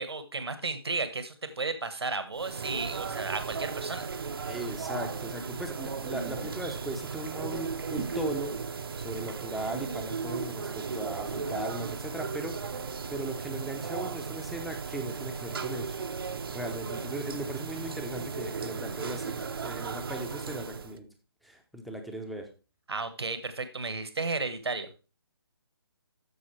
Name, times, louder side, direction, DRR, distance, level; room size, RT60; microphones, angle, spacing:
voice 1, 0.0-4.1 22.9-24.9, right 3 dB, 85° right, 10 dB, 1.5 m, -33 dB
sound 1, 2.3-21.0, right 5 dB, 65° right, 0.8 m, -36 dB
voice 2, 4.5-12.6 13.1-16.0 16.5-21.1 21.4-22.5, right 1 dB, ahead, 2 dB, 0.7 m, -38 dB
13.5 x 5.1 x 3.2 m, 0.32 s
hypercardioid pair, 160°, 13 cm